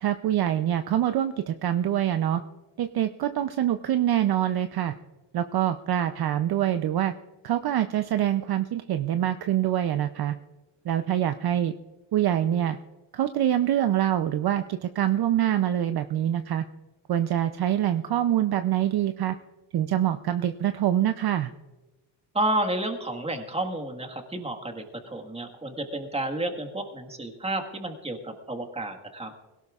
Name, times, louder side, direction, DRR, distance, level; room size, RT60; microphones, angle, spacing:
voice 1, 0.0-2.4 2.8-4.9 5.3-7.1 7.4-10.4 10.9-11.7 12.1-12.8 13.1-16.6 17.1-19.4 19.7-21.5, right 11 dB, 50° right, 9 dB, 0.6 m, -25 dB
voice 2, 22.3-29.3, right 1 dB, 10° right, 5 dB, 1.5 m, -31 dB
21.0 x 17.5 x 2.4 m, 1.2 s
cardioid pair, 125°, 49 cm